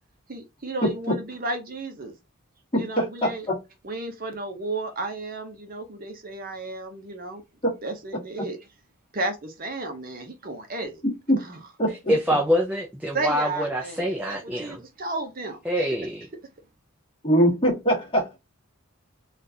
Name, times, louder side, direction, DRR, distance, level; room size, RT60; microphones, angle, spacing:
voice 1, 0.3-2.1 2.7-3.5 3.8-7.4 7.8-8.6 9.1-11.0 11.4-11.6 12.1-12.2 13.1-14.1 14.4-15.6, right 2 dB, 40° right, 0.7 m, -33 dB
voice 2, 0.8-1.2 2.7-3.6 7.6-7.7 11.0-11.4 11.8-11.9 17.2-18.4, equal, 25° left, 1.3 m, -23 dB
voice 3, 11.9-14.8 15.6-16.3, equal, 5° right, 0.4 m, -25 dB
3.8 x 2.4 x 2.7 m
head